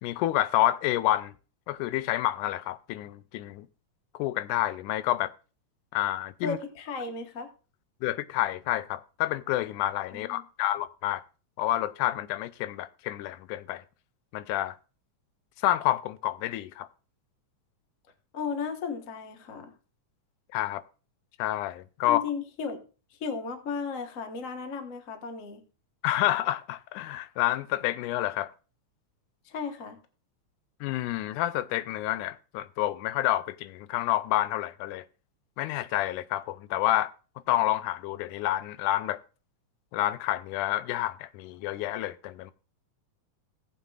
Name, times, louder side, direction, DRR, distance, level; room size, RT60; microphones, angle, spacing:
voice 1, 0.0-1.3 1.7-3.7 4.2-5.3 5.9-6.6 8.0-11.2 11.6-13.8 14.3-14.8 15.6-16.9 20.5-20.8 21.4-22.2 26.0-28.5 30.8-35.0 35.6-37.1 37.5-39.2 39.9-42.5, left 14 dB, 90° left, 2.1 m, -29 dB
voice 2, 6.4-7.5 10.1-10.4 18.3-19.7 22.0-22.8 23.1-25.6 29.4-30.0, left 5 dB, 50° left, 0.9 m, -35 dB
18.0 x 7.5 x 2.4 m
omnidirectional pair, 3.5 m